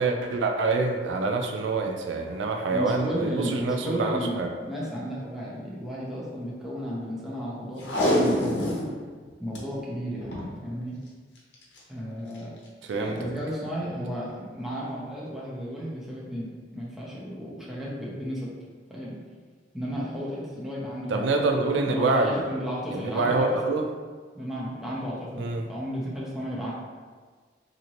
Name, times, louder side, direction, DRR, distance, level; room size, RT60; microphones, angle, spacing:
voice 1, 0.0-4.5 12.9-13.2 21.1-22.4 22.9-23.9 25.4-25.6, right 3 dB, 85° right, 4 dB, 0.3 m, -26 dB
voice 2, 2.7-8.8 9.4-10.3 10.6-11.0 11.9-12.5 12.9-18.5 18.9-19.2 19.7-21.4 21.9-23.6 24.3-26.7, equal, ahead, -7 dB, 0.6 m, -33 dB
Packing tape duct tape, 7.8-8.9 9.3-9.4 9.5-9.6 10.2-10.5 11.5-11.8 12.4-12.5, left 1 dB, 75° left, 0.7 m, -25 dB
2.9 x 2.7 x 2.9 m, 1.5 s
head